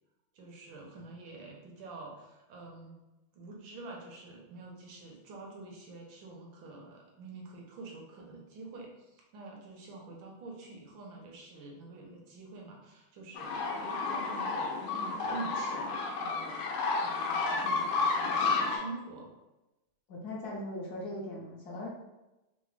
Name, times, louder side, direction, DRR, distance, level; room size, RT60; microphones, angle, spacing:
voice 1, 0.3-2.9 3.3-15.9 16.2-16.6 17.0-19.3, right 3 dB, 75° right, -1 dB, 1.4 m, -47 dB
sound 1, 13.4-18.8, left 4 dB, 80° left, 1.4 m, -31 dB
voice 2, 20.1-21.9, left 1 dB, 60° left, -3 dB, 1.2 m, -39 dB
3.9 x 2.1 x 3.1 m, 1.0 s
omnidirectional pair, 2.2 m